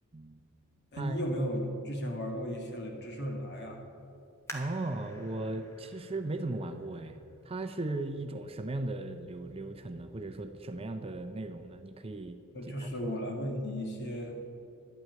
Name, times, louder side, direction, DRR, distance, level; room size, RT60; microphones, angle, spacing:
voice 1, 0.9-3.8 12.5-14.3, equal, 50° left, 2 dB, 1.8 m, -35 dB
sound 1, 4.5-7.8 8.4-8.5 9.2-9.6 9.9-10.0, equal, 10° left, 1.3 m, -49 dB
voice 2, 4.5-13.3, right 2 dB, 25° right, 7 dB, 0.5 m, -37 dB
11.5 x 6.1 x 9.1 m, 2.7 s
head